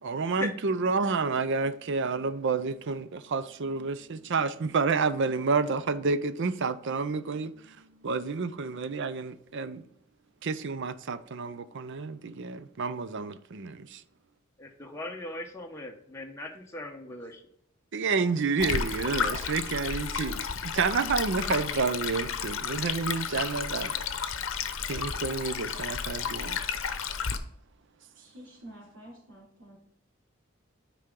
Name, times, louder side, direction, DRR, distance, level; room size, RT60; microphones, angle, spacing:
voice 1, 0.0-7.8 8.0-9.8 10.4-14.0 17.9-23.9 24.9-26.6, right 4 dB, 60° right, 0.6 m, -29 dB
voice 2, 14.6-17.4, left 1 dB, 15° left, 0.9 m, -39 dB
Stream, 18.6-27.4, left 6 dB, 65° left, 0.7 m, -32 dB
voice 3, 28.1-29.8, right 1 dB, 90° right, 3.0 m, -49 dB
9.5 x 5.0 x 3.7 m
head